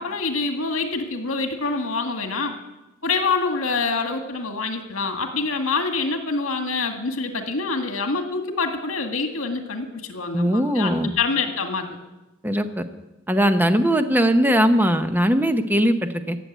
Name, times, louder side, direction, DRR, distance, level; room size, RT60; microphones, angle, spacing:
voice 1, 0.0-2.5 3.0-11.9, left 4 dB, 80° left, 5 dB, 1.9 m, -26 dB
voice 2, 10.3-11.1 12.4-12.8 13.3-16.4, equal, 10° right, 8 dB, 0.8 m, -20 dB
15.0 x 7.8 x 9.2 m, 1.0 s
head